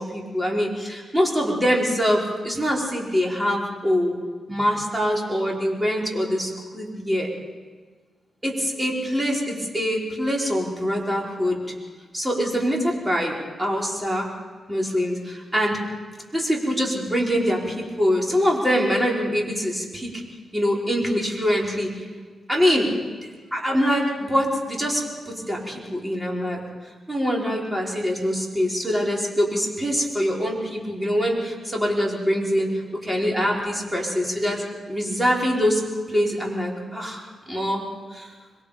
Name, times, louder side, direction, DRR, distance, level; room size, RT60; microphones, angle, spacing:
voice 1, 0.0-4.1 4.5-7.3 8.4-11.6 12.1-14.3 14.7-15.8 16.3-20.1 20.5-22.0 22.5-22.9 23.5-26.6 27.1-32.7 33.0-35.8 36.1-37.2 37.5-37.8 38.1-38.3, equal, 10° right, -2 dB, 5.3 m, -24 dB
26.5 x 22.0 x 5.3 m, 1.5 s
cardioid pair, 80°, 0 cm